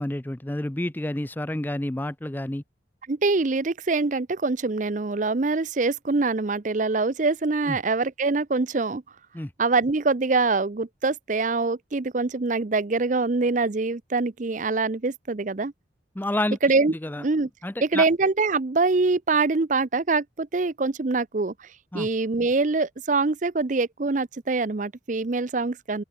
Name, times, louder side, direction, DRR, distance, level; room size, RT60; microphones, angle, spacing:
voice 1, 0.0-2.6 7.7-7.8 9.3-9.5 16.2-16.6 17.0-17.2 17.6-18.0 21.9-22.1, left 1 dB, 10° left, 0.5 m, -29 dB
voice 2, 3.1-9.0 9.6-15.7 16.6-17.5 17.8-21.7 21.9-26.0, right 3 dB, 40° right, 0.6 m, -24 dB
open air
head